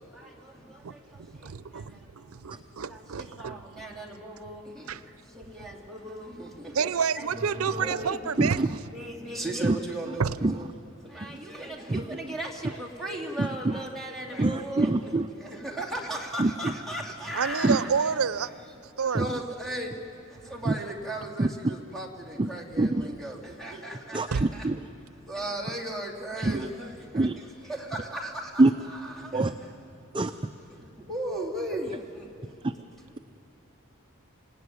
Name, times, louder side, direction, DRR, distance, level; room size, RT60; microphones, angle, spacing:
voice 1, 1.2-3.6 4.9-5.0 6.7-8.6 10.2-10.4 17.3-18.5 19.0-19.2 24.3-24.4, right 6 dB, 90° right, 15 dB, 0.6 m, -29 dB
voice 2, 3.4-4.8 5.5-6.5 7.1-8.2 8.9-10.2 10.5-10.7 11.1-14.9 15.6-18.2 19.2-19.9 20.5-24.6 25.3-26.9 27.7-28.5 28.9-29.4 31.1-31.9, right 1 dB, ahead, -1 dB, 2.7 m, -36 dB
voice 3, 8.4-8.8 9.6-9.8 10.1-10.2 10.4-10.6 11.3-11.4 11.9-12.0 13.4-13.8 14.4-15.3 16.4-16.7 17.6-17.8 19.1-19.4 20.6-20.8 21.4-21.7 22.4-22.5 22.8-23.2 24.1-24.9 26.4-26.7 27.1-27.4 28.6-28.7 29.3-29.5 30.1-30.5, right 2 dB, 25° right, 8 dB, 0.5 m, -25 dB
27.5 x 17.5 x 9.5 m, 2.9 s
head